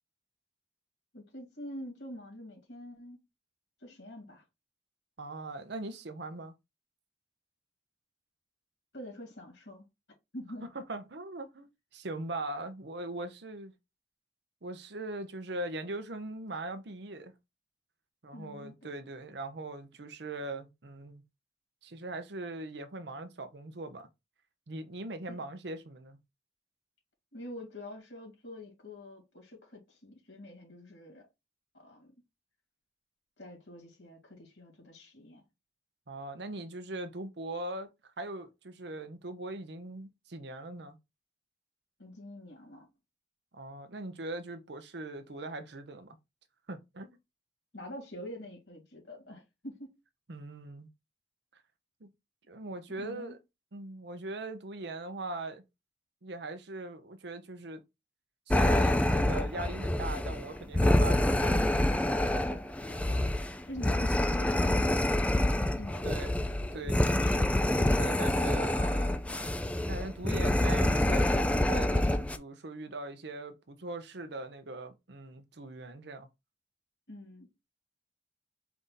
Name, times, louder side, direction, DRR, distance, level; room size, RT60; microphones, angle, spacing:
voice 1, 1.1-3.2 3.8-4.4 8.9-9.8 10.3-10.7 18.3-18.7 25.3-25.4 27.3-31.3 31.7-32.1 33.4-35.4 42.0-42.9 47.7-49.9 53.0-53.3 62.8-63.4 63.7-65.2 65.8-66.3 77.1-77.5, left 1 dB, 75° left, 2.4 m, -46 dB
voice 2, 5.2-6.5 10.7-13.7 14.6-17.3 18.2-21.2 21.8-24.1 24.7-26.2 36.1-37.9 38.2-41.0 43.5-46.2 46.7-47.1 50.3-50.9 52.0-52.1 52.5-53.4 53.7-55.6 56.2-57.8 58.5-62.0 62.5-62.7 66.0-66.3 66.7-69.1 69.9-76.3, right 2 dB, 60° right, 0.8 m, -40 dB
sound 1, 58.5-72.4, left 1 dB, 5° left, 0.3 m, -27 dB
4.7 x 2.7 x 3.8 m
head